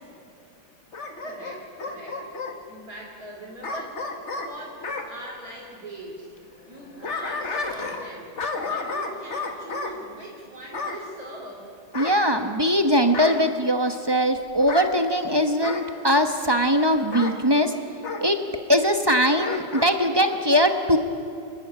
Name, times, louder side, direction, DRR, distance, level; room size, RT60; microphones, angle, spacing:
Bark / Growling, 0.9-2.6 3.6-5.1 6.7-8.1 8.4-9.9 10.7-11.0 11.9-12.7 13.1-13.5 14.6-14.9 15.6-15.9 17.1-17.4 18.0-18.3 19.3-19.9 20.3-20.4, left 3 dB, 40° left, 1.7 m, -32 dB
voice 1, 1.2-2.2 2.7-4.0 4.4-6.3 6.7-8.3 8.6-11.7, right 1 dB, 50° right, -2 dB, 3.4 m, -41 dB
voice 2, 11.9-17.7 18.2-18.4 18.7-21.0, equal, 20° right, 6 dB, 0.7 m, -21 dB
27.5 x 11.5 x 10.0 m, 2.4 s
omnidirectional pair, 2.0 m